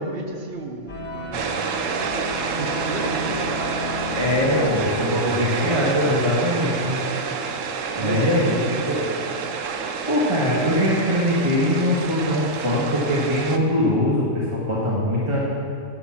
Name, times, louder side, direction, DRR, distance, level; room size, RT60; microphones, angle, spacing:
voice 1, 0.0-1.7 2.5-3.9 6.6-7.4 8.0-9.1, right 3 dB, 50° right, 3 dB, 1.2 m, -33 dB
sound 1, 0.9-5.7, left 1 dB, 65° left, 2.2 m, -32 dB
sound 2, 1.3-13.6, right 5 dB, 75° right, 1.1 m, -29 dB
voice 2, 4.2-6.9 7.9-8.5 8.9-9.1 10.1-15.4, left 1 dB, 25° right, -6 dB, 1.7 m, -22 dB
10.5 x 8.6 x 5.9 m, 2.3 s
omnidirectional pair, 1.3 m